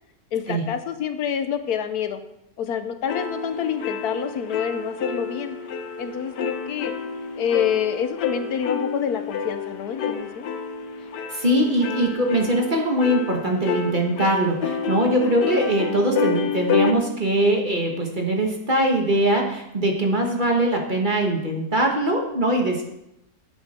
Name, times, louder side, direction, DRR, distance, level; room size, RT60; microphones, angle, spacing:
voice 1, 0.3-2.2 2.6-5.6 6.0-6.9 7.4-10.5 15.5-15.7, left 8 dB, 70° left, 9 dB, 1.2 m, -27 dB
sound 1, 3.1-16.9, left 6 dB, 90° left, 1.5 m, -29 dB
voice 2, 11.3-22.8, right 1 dB, 30° right, 1 dB, 1.4 m, -22 dB
11.5 x 8.0 x 4.3 m, 0.83 s
omnidirectional pair, 1.7 m